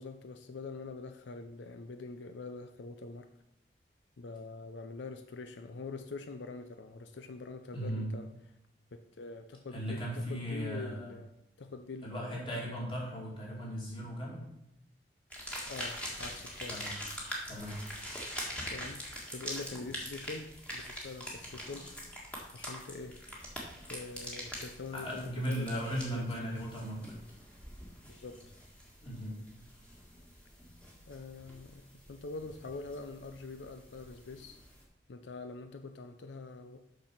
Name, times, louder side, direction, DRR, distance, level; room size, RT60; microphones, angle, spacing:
voice 1, 0.0-3.3 4.2-8.3 8.9-11.3 11.6-12.4 15.7-16.8 18.7-19.0 19.3-21.9 22.5-23.2 23.9-26.7 28.1-28.4 31.1-34.6 35.1-36.8, left 3 dB, 90° left, 8 dB, 0.5 m, -44 dB
voice 2, 7.7-8.1 9.7-11.2 12.0-14.4 16.7-17.0 17.5-17.8 24.9-27.0 29.0-29.4, equal, 30° left, -4 dB, 2.6 m, -37 dB
sound 1, 15.3-34.8, equal, 5° left, 1.6 m, -44 dB
6.6 x 6.2 x 5.8 m, 0.85 s
head